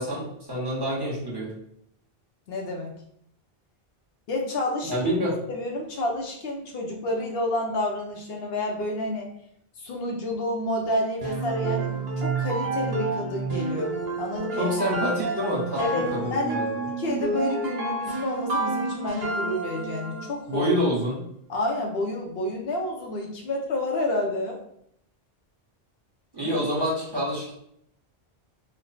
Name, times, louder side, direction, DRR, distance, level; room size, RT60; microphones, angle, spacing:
voice 1, 0.0-1.5 4.9-5.3 14.6-16.7 20.5-21.2 26.3-27.5, equal, 25° right, -8 dB, 1.1 m, -27 dB
voice 2, 2.5-2.9 4.3-5.0 5.5-9.3 9.8-11.9 12.2-14.7 15.8-16.6 17.0-20.7 21.5-24.6 26.4-26.5, left 1 dB, 75° left, 0 dB, 0.9 m, -29 dB
sound 1, 11.2-20.4, right 3 dB, 80° right, 1.2 m, -29 dB
3.2 x 2.2 x 4.0 m, 0.72 s
omnidirectional pair, 1.0 m